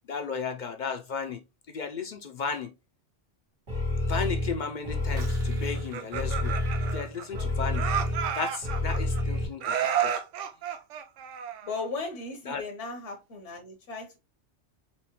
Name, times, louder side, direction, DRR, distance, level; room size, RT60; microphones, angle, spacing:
voice 1, 0.1-1.4 1.7-2.7 4.1-6.5 6.9-7.9 8.4-10.1 12.5-12.6, left 5 dB, 55° left, 0.5 m, -34 dB
sound 1, 3.7-9.4, left 1 dB, 75° right, 1.9 m, -29 dB
sound 2, 4.9-8.0 8.3-8.7, right 1 dB, 55° right, 1.3 m, -49 dB
Laughter, 5.7-7.4 7.7-9.2 9.6-11.9, right 9 dB, 90° right, 0.9 m, -31 dB
voice 2, 11.6-14.2, left 3 dB, 75° left, 1.2 m, -36 dB
4.5 x 3.0 x 2.9 m
omnidirectional pair, 1.2 m